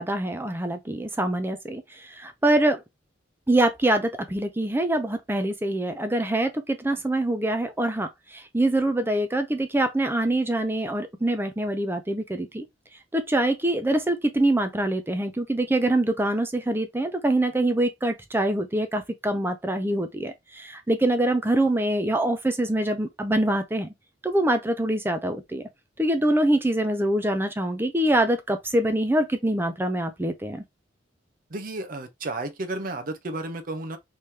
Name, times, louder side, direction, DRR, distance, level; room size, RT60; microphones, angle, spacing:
voice 1, 0.0-2.8 3.5-12.6 13.1-23.9 24.2-25.6 26.0-30.6, right 1 dB, 10° right, 0.5 m, -24 dB
voice 2, 31.5-34.0, right 2 dB, 45° right, 0.7 m, -32 dB
3.6 x 3.2 x 2.8 m
head